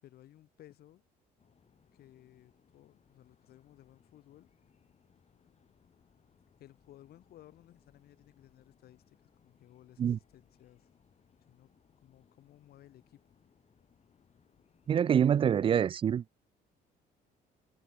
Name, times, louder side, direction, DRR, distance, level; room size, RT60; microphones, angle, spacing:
voice 1, 0.0-1.0 1.9-4.5 6.6-10.9 11.5-11.7 12.0-13.2 15.1-15.4, left 13 dB, 65° left, 3.7 m, -58 dB
sound 1, 1.4-15.8, left 7 dB, 40° left, 6.1 m, -68 dB
voice 2, 14.9-16.2, right 8 dB, 30° right, 0.3 m, -26 dB
cardioid pair, 110°, 17 cm